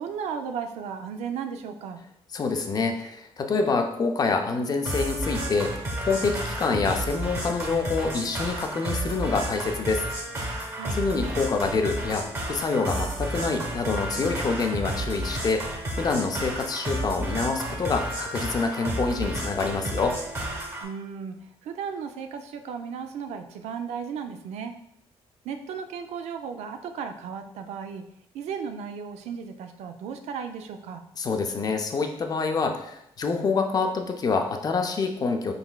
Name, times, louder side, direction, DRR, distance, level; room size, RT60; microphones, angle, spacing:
voice 1, 0.0-2.0 10.7-11.0 20.8-24.7 25.4-28.0 28.3-31.0, right 6 dB, 90° right, 7 dB, 0.4 m, -35 dB
voice 2, 2.3-5.7 6.1-10.0 10.9-15.6 16.0-20.2 31.2-35.5, left 4 dB, 35° left, 5 dB, 0.5 m, -26 dB
sound 1, 4.8-20.8, right 1 dB, 25° right, 1.0 m, -32 dB
4.3 x 3.9 x 2.3 m, 0.76 s
cardioid pair, 125°, 11 cm